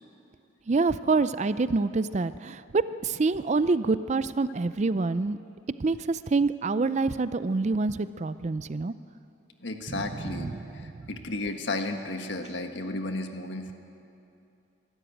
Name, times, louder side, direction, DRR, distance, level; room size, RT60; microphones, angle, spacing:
voice 1, 0.7-5.4 5.8-8.9 9.9-10.9, right 3 dB, 35° right, 14 dB, 0.4 m, -27 dB
voice 2, 9.6-13.7, left 2 dB, 65° left, 5 dB, 1.6 m, -33 dB
24.0 x 13.0 x 9.1 m, 2.7 s
head